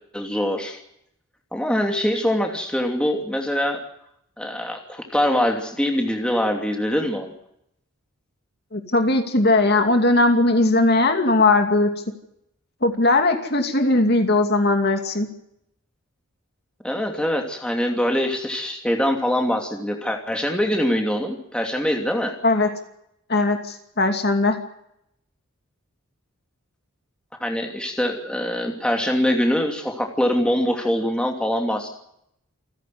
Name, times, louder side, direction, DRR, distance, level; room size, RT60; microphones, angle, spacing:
voice 1, 0.1-0.8 1.5-3.8 4.4-7.3 16.8-22.3 27.4-31.9, equal, 5° left, 2 dB, 2.8 m, -23 dB
voice 2, 8.7-11.9 12.8-15.3 22.4-22.7 23.3-24.6, left 2 dB, 50° left, 5 dB, 2.6 m, -19 dB
28.5 x 11.0 x 9.6 m, 0.76 s
head